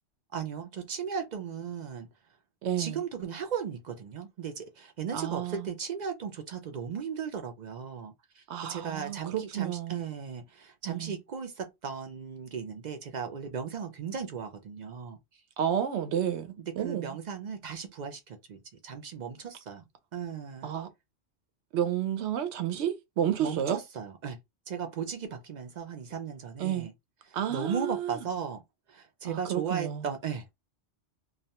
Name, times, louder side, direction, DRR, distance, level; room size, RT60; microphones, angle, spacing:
voice 1, 0.3-2.1 2.8-15.2 16.6-19.9 20.1-20.7 23.4-24.4 24.7-26.9 27.3-28.6 28.9-30.5, right 7 dB, 60° right, 0.5 m, -36 dB
voice 2, 2.6-3.0 5.1-5.7 8.5-10.0 10.9-11.1 15.6-17.2 20.6-20.9 21.7-23.8 26.6-26.9 27.3-28.2 29.2-30.1, right 10 dB, 75° right, 0.9 m, -31 dB
2.3 x 2.2 x 2.7 m
omnidirectional pair, 1.2 m